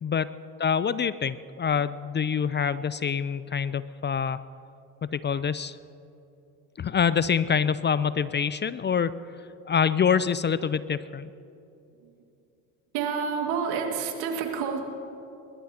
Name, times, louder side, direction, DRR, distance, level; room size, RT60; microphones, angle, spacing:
voice 1, 0.0-0.3 0.6-4.4 5.0-5.8 6.8-9.1 9.7-11.3, left 7 dB, 30° left, 16 dB, 0.5 m, -26 dB
voice 2, 12.9-14.9, right 6 dB, 75° right, 2 dB, 2.2 m, -28 dB
22.0 x 21.0 x 2.9 m, 2.7 s
hypercardioid pair, 60°, 39 cm